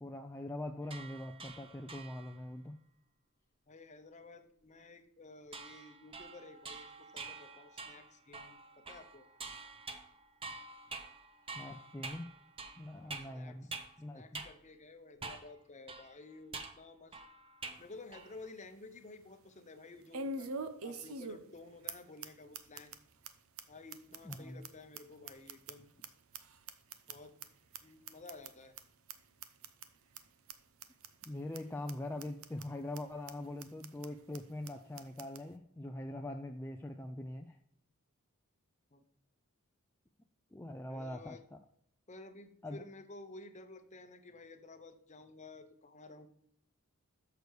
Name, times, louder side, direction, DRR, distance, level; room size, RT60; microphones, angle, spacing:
voice 1, 0.0-2.8 11.5-12.3 12.8-13.7 14.0-14.4 24.2-24.6 31.2-37.6 40.5-41.4 42.6-42.8, left 1 dB, 10° left, 3 dB, 0.4 m, -43 dB
sound 1, 0.8-2.4 5.5-14.0 14.3-14.5 15.2-15.6 15.9-17.9 18.1-18.5, right 3 dB, 25° right, 0.7 m, -47 dB
voice 2, 3.7-9.3 12.9-13.6 14.1-17.2 17.8-20.5 20.8-23.0 23.7-25.9 27.1-27.4 27.8-28.8 38.9-39.0 40.9-41.4 42.1-46.3, left 3 dB, 30° left, 7 dB, 0.8 m, -53 dB
sound 2, 17.8-17.9 18.3-18.4 20.1-21.6 21.9-22.0 22.2-22.3 22.5-23.0 23.2-23.3 23.6-23.7 23.9-26.1 26.3-27.4 27.7-27.8 28.1-28.5 28.8-28.9 29.1-29.2 29.4-29.9 30.1-30.2 30.5-30.6 30.8-31.3 31.5-31.6 31.9-32.0 32.2-32.6 32.9-33.0 33.3-33.4 33.6-34.1 34.3-34.4 34.6-34.7 35.0-35.4, right 3 dB, 65° right, 0.7 m, -43 dB
6.8 x 6.4 x 4.7 m, 0.69 s
head